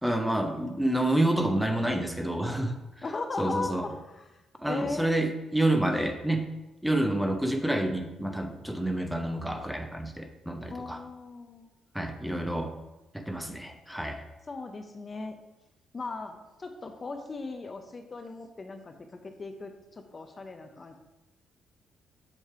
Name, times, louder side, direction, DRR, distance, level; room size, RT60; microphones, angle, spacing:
voice 1, 0.0-3.0 3.4-3.9 4.6-6.4 6.8-11.0 11.9-12.7 13.1-14.2, right 1 dB, 5° right, 5 dB, 0.7 m, -28 dB
voice 2, 3.0-4.4 4.7-5.2 10.7-11.7 14.5-15.4 15.9-21.0, left 3 dB, 30° left, 6 dB, 0.7 m, -38 dB
7.3 x 3.2 x 5.6 m, 1.0 s
cardioid pair, 90°, 0 cm